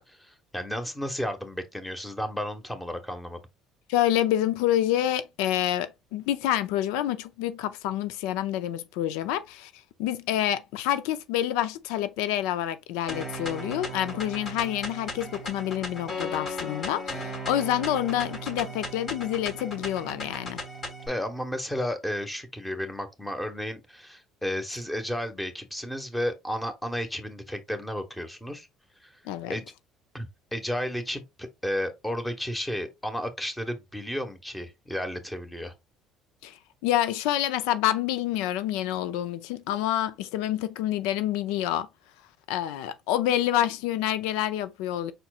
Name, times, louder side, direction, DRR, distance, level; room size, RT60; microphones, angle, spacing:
voice 1, 0.0-3.4 21.1-28.7 29.0-29.2 29.5-29.7 30.1-35.7, equal, 10° left, 1.3 m, -33 dB
voice 2, 3.9-9.7 10.0-20.6 29.3-29.6 36.4-41.9 42.5-45.1, left 12 dB, 85° left, 0.5 m, -27 dB
sound 1, 13.1-21.1, equal, 45° left, 2.9 m, -36 dB
5.1 x 4.3 x 2.4 m
cardioid pair, 105°, 0 cm